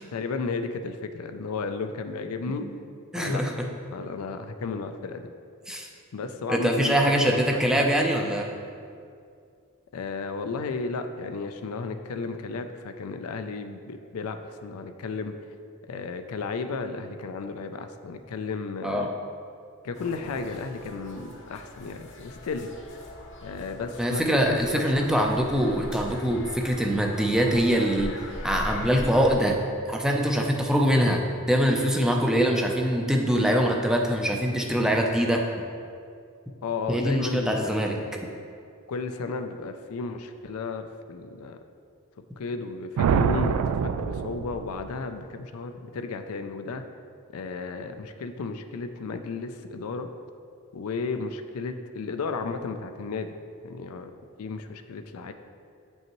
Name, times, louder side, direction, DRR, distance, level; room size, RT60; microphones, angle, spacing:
voice 1, 0.1-2.6 3.1-3.4 3.9-5.3 6.1-7.6 9.9-15.3 15.9-19.1 19.8-22.7 23.4-25.1 36.6-37.8 38.9-41.6 42.4-46.8 47.3-50.1 50.7-53.3 53.6-54.1 54.4-55.3, left 4 dB, 80° left, 8 dB, 0.4 m, -33 dB
voice 2, 3.1-3.5 5.7-5.9 6.5-8.5 18.8-19.1 24.0-28.1 28.4-29.6 29.9-35.5 36.9-38.0, equal, 5° right, 1 dB, 0.4 m, -23 dB
sound 1, 19.9-29.4, left 1 dB, 60° left, 0.8 m, -40 dB
sound 2, 43.0-44.9, right 6 dB, 90° right, 0.3 m, -25 dB
8.1 x 5.4 x 3.0 m, 2.4 s
head